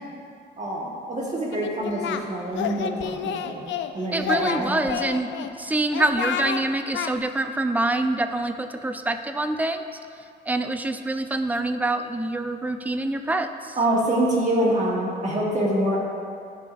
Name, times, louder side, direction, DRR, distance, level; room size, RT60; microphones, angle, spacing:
voice 1, 0.6-3.6 3.9-4.9 13.8-16.0, right 1 dB, 35° right, -4 dB, 1.4 m, -25 dB
Singing, 1.5-2.2 2.5-3.9 4.2-5.5 5.9-6.6 6.9-7.1, left 9 dB, 70° left, 0.5 m, -29 dB
voice 2, 4.1-9.8 10.5-13.8, right 2 dB, 10° right, 8 dB, 0.4 m, -26 dB
13.5 x 4.9 x 2.5 m, 2.4 s
cardioid pair, 90°, 20 cm